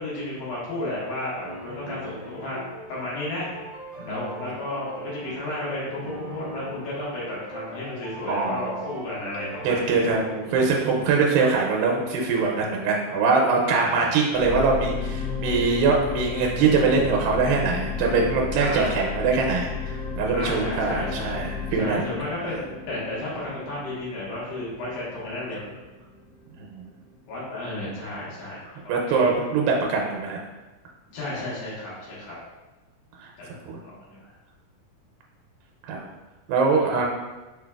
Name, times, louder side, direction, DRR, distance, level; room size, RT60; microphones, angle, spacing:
voice 1, 0.0-2.6 2.9-3.5 4.0-10.1 13.6-14.0 18.6-19.1 20.3-21.4 21.8-25.6 27.3-28.6 29.1-29.3 31.1-32.4 33.4-33.5 33.8-34.3 36.7-36.9, left 1 dB, 85° left, -7 dB, 2.9 m, -33 dB
sound 1, 1.4-11.2, right 1 dB, 65° right, 0.5 m, -40 dB
voice 2, 4.0-4.5 8.3-8.9 9.6-22.0 26.6-26.9 28.9-30.4 33.7-33.8 35.9-36.1 36.5-37.1, right 4 dB, 90° right, 0 dB, 2.3 m, -23 dB
Spacey Airy Pad, 14.3-26.7 27.3-27.4, left 6 dB, 70° left, 2.0 m, -33 dB
6.1 x 2.2 x 2.3 m, 1.2 s
omnidirectional pair, 3.9 m